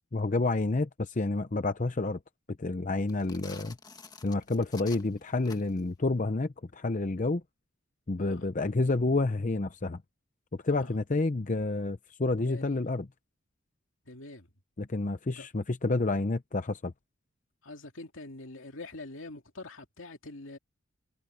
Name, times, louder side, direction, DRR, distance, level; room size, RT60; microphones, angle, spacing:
voice 1, 0.1-2.2 2.6-3.8 4.2-7.4 8.1-10.0 10.5-13.1 14.8-16.9, left 2 dB, 40° left, 0.7 m, -29 dB
sound 1, 3.0-5.9, left 4 dB, 20° left, 1.7 m, -50 dB
voice 2, 12.5-12.8 14.1-14.5 15.4-15.5 17.6-20.6, left 2 dB, 75° left, 2.6 m, -44 dB
head